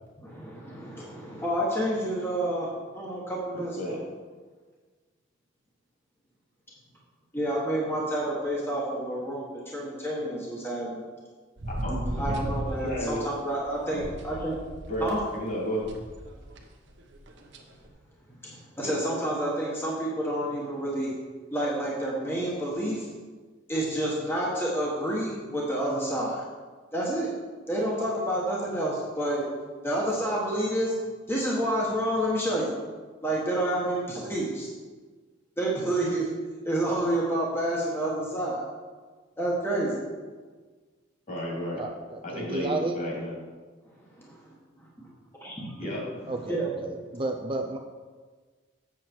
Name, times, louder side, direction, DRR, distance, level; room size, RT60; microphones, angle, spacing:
voice 1, 0.2-4.0 7.3-11.0 12.2-14.6 15.0-15.2 18.4-21.1 21.5-23.1 23.7-26.4 26.9-27.3 27.7-29.4 29.8-30.9 31.3-32.7 33.2-34.7 35.6-36.3 36.6-38.6 39.4-39.9 44.2-44.5 45.0-45.1 45.4-46.0 46.5-46.7, right 1 dB, 10° left, -4 dB, 1.3 m, -29 dB
sound 1, 11.6-15.1 15.8-16.6 16.9-17.9, right 1 dB, 65° right, 1.0 m, -35 dB
voice 2, 12.8-13.2 13.9-14.0 14.9-15.8 18.8-19.0 41.3-41.8 42.3-43.3 45.8-46.0, equal, 45° left, -3 dB, 2.9 m, -32 dB
voice 3, 41.8-43.0 46.3-47.8, right 3 dB, 25° right, 4 dB, 0.5 m, -32 dB
7.5 x 7.4 x 4.5 m, 1.4 s
head